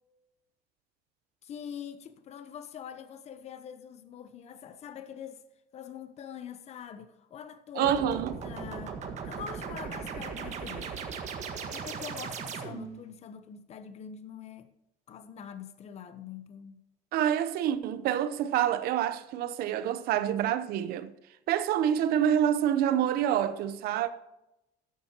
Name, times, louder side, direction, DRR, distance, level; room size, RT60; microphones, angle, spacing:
voice 1, 1.4-5.4 5.7-9.0 9.2-10.9 11.6-14.7 15.1-16.8, left 8 dB, 40° left, 1.0 m, -43 dB
sound 1, 7.8-13.0, right 6 dB, 45° right, 1.6 m, -38 dB
voice 2, 7.8-8.3 17.1-21.1 21.5-24.1, right 10 dB, 65° right, 0.9 m, -27 dB
13.0 x 10.5 x 3.0 m
cardioid pair, 145°, 17 cm